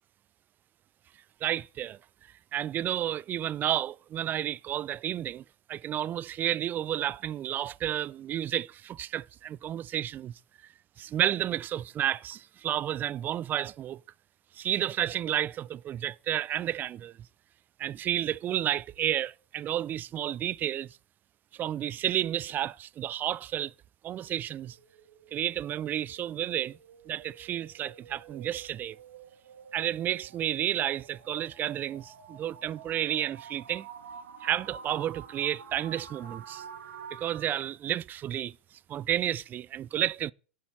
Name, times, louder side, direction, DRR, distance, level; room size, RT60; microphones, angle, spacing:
voice 1, 1.4-2.0 2.5-5.4 5.7-10.3 11.0-14.0 14.5-17.1 17.8-21.0 21.5-23.7 24.0-24.8 25.3-26.8 27.1-29.0 29.7-33.9 34.4-36.6 37.1-38.6 38.9-40.3, right 11 dB, 30° right, 0.5 m, -31 dB
sound 1, 24.4-37.4, right 7 dB, 70° right, 2.1 m, -49 dB
11.5 x 7.0 x 8.6 m
hypercardioid pair, 95°, 6 cm